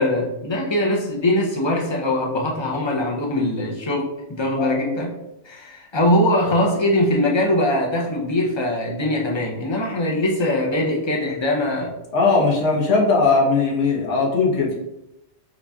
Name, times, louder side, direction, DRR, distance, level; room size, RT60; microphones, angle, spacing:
voice 1, 0.0-5.1 5.4-11.9, left 1 dB, 35° left, -1 dB, 0.5 m, -22 dB
voice 2, 12.1-14.7, left 4 dB, 80° left, -2 dB, 1.2 m, -19 dB
4.1 x 3.2 x 2.3 m, 0.89 s
omnidirectional pair, 1.2 m